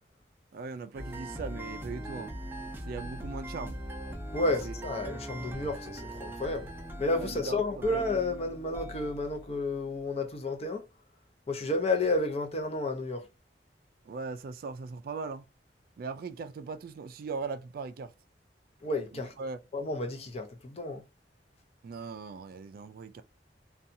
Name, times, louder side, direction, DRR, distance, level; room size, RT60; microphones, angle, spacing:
voice 1, 0.5-2.3 2.8-3.8 4.6-4.7 7.2-7.8 14.0-15.4 16.0-18.1 19.1-19.6 21.8-23.2, right 4 dB, 55° right, 0.3 m, -39 dB
sound 1, 0.9-10.1, right 1 dB, 15° right, 0.6 m, -41 dB
voice 2, 4.3-6.7 7.0-10.8 11.5-13.3 18.8-19.4 19.7-21.0, left 2 dB, 35° left, 0.6 m, -31 dB
2.7 x 2.3 x 2.6 m
head